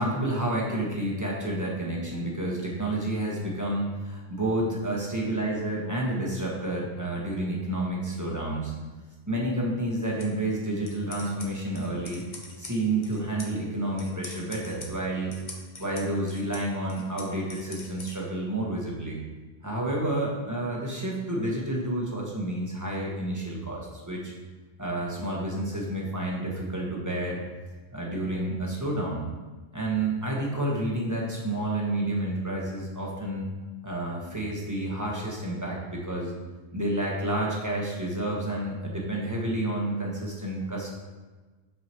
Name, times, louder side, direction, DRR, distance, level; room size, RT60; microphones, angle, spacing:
voice 1, 0.0-8.8 9.3-12.2 12.6-15.3 15.8-19.2 19.6-24.3 24.8-27.4 27.9-29.3 29.7-33.5 33.8-36.3 36.7-40.9, right 1 dB, 15° right, -3 dB, 1.2 m, -30 dB
sound 1, 10.0-18.1, left 3 dB, 45° left, 0.9 m, -46 dB
7.7 x 4.8 x 3.0 m, 1.3 s
omnidirectional pair, 1.1 m